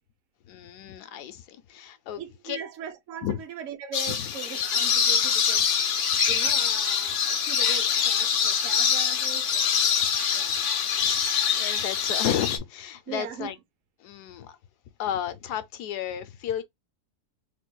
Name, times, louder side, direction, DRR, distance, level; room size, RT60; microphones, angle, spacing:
voice 1, 0.5-2.6 3.2-3.4 10.5-10.6 11.0-11.2 11.6-13.5 14.0-14.5 15.0-16.6, left 10 dB, 90° left, 1.2 m, -33 dB
voice 2, 2.1-9.8 10.3-10.6 13.1-13.5, right 8 dB, 60° right, 1.0 m, -40 dB
sound 1, 3.9-12.6, left 7 dB, 60° left, 0.8 m, -24 dB
3.6 x 3.3 x 2.2 m
omnidirectional pair, 1.7 m